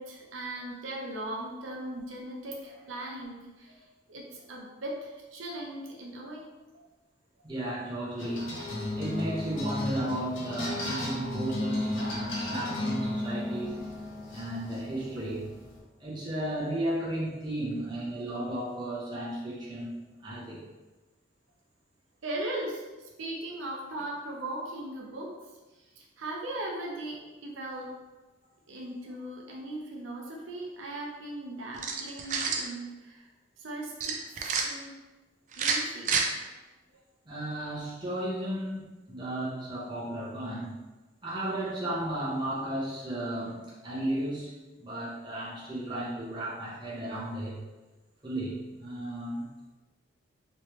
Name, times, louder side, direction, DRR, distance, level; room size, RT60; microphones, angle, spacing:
voice 1, 0.0-6.9 22.2-25.4 25.7-27.9 28.7-33.3 33.6-35.0 35.6-36.6 36.9-37.0, right 1 dB, 85° right, -2 dB, 0.6 m, -39 dB
voice 2, 7.4-8.6 9.0-13.8 14.3-15.5 16.0-19.9 20.2-20.6 37.2-40.8 41.2-44.5 44.8-47.6 48.2-49.7, right 1 dB, 25° right, -7 dB, 0.9 m, -34 dB
sound 1, 8.2-15.8, left 1 dB, 90° left, 0.8 m, -34 dB
sound 2, 31.7-32.7 34.0-34.6 35.5-36.2, right 5 dB, 40° right, 0.3 m, -28 dB
3.2 x 3.0 x 3.0 m, 1.2 s
head